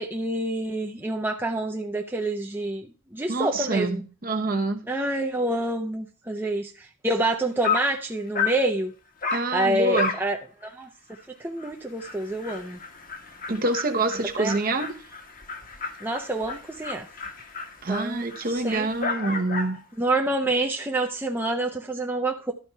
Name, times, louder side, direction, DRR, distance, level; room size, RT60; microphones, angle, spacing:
voice 1, 0.0-4.0 4.9-8.9 9.5-10.4 10.6-10.9 11.3-12.8 14.4-14.5 16.0-17.1 17.9-18.9 20.0-22.5, right 2 dB, 10° right, 0.6 m, -27 dB
voice 2, 3.3-4.8 9.3-10.1 13.5-14.9 17.8-19.8, right 2 dB, 40° right, 1.0 m, -26 dB
Dog, 7.3-7.4 7.6-8.0 8.3-8.6 9.2-9.5 9.9-10.3 10.6-10.7 11.1-11.2 11.6-11.7 12.0-19.8, left 5 dB, 40° left, 1.2 m, -32 dB
12.0 x 4.3 x 5.4 m
head